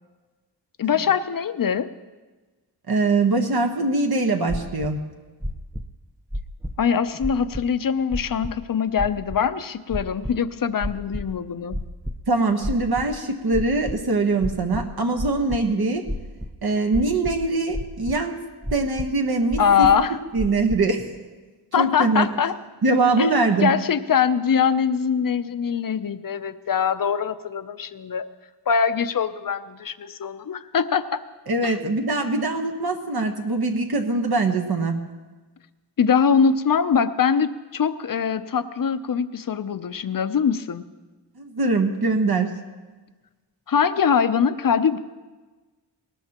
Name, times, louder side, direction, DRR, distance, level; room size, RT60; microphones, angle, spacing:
voice 1, 0.8-1.9 6.8-11.8 19.6-20.2 21.7-22.5 23.2-23.3 23.6-28.3 28.7-31.2 31.6-31.9 36.0-40.8 43.7-45.0, left 7 dB, 50° left, 12 dB, 0.7 m, -22 dB
voice 2, 2.9-5.0 12.3-16.0 16.6-18.4 18.7-19.9 20.3-21.0 21.8-22.3 22.8-23.7 31.5-35.0 41.4-42.5, right 3 dB, 60° right, 3 dB, 1.3 m, -22 dB
sound 1, 4.5-4.9 5.4-5.9 6.3-6.8 7.2-7.6 8.1-8.5 9.0-9.4 9.9-10.4 10.8-11.3 11.7-12.2 12.6-13.2 13.5-14.0 14.4-15.6 16.1-16.5 16.9-17.5 17.7-18.2 18.6-19.1 19.5-20.0 20.4-20.8, equal, 5° right, 0.6 m, -30 dB
20.0 x 18.5 x 3.0 m, 1.3 s
wide cardioid pair, 115°, 42 cm